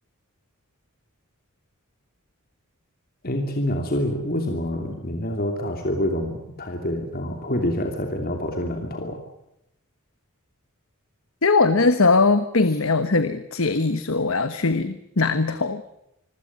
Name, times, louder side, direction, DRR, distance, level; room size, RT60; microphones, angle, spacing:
voice 1, 3.2-9.2, left 1 dB, 45° left, 4 dB, 2.8 m, -27 dB
voice 2, 11.4-15.8, left 3 dB, 65° left, 11 dB, 1.2 m, -20 dB
26.0 x 15.5 x 9.6 m, 0.82 s
head